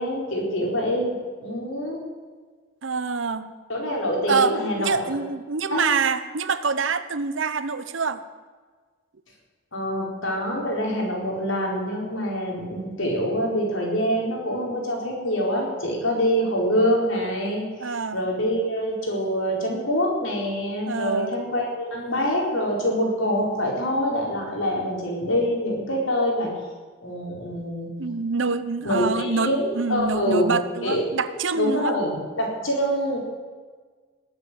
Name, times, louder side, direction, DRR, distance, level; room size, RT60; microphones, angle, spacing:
voice 1, 0.0-2.0 3.7-5.2 5.7-5.8 9.7-26.5 27.0-27.9 28.8-30.5 30.8-31.0 31.5-33.2, equal, 85° left, -1 dB, 4.6 m, -25 dB
voice 2, 2.8-3.5 4.3-4.5 4.8-8.2 17.8-18.2 20.9-21.3 28.0-31.9, right 5 dB, 75° right, 13 dB, 0.8 m, -26 dB
19.5 x 8.3 x 7.7 m, 1.5 s
head